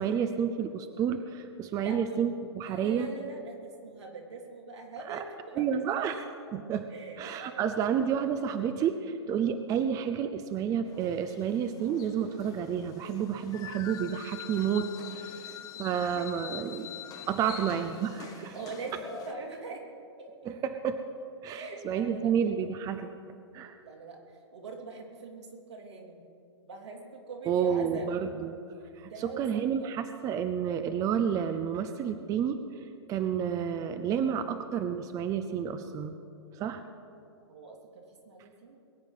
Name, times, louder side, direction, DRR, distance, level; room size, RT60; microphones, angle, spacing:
voice 1, 0.0-3.1 5.1-5.2 5.6-6.2 6.5-6.9 7.2-15.5 15.8-16.9 17.3-18.5 20.4-21.0 21.4-23.1 23.5-23.7 27.5-28.5 29.0-32.6 33.1-36.1 36.5-36.8, right 8 dB, 25° right, 9 dB, 0.7 m, -30 dB
voice 2, 1.8-2.2 2.5-6.0 6.9-7.8 15.3-16.2 17.4-17.6 18.2-19.8 20.2-20.3 21.5-22.3 23.8-26.2 26.6-28.1 29.1-29.9 37.5-38.8, right 4 dB, 80° right, 0 dB, 3.3 m, -43 dB
sound 1, 10.8-19.3, left 9 dB, 25° left, 1.1 m, -45 dB
22.0 x 9.0 x 5.6 m, 2.5 s
hypercardioid pair, 125°, 14 cm